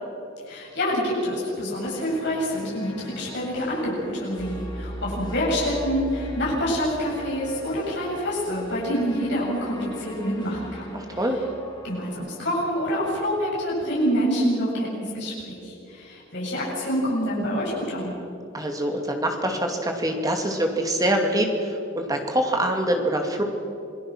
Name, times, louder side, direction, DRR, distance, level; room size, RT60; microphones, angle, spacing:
voice 1, 0.5-11.0 11.8-18.1, equal, 60° left, -6 dB, 7.6 m, -27 dB
sound 1, 1.8-12.1, left 1 dB, 25° left, 5.2 m, -43 dB
sound 2, 4.4-10.6, equal, ahead, 1.2 m, -40 dB
voice 2, 10.9-11.4 18.5-23.4, right 1 dB, 20° right, 3 dB, 2.4 m, -25 dB
27.5 x 20.0 x 6.2 m, 2.6 s
head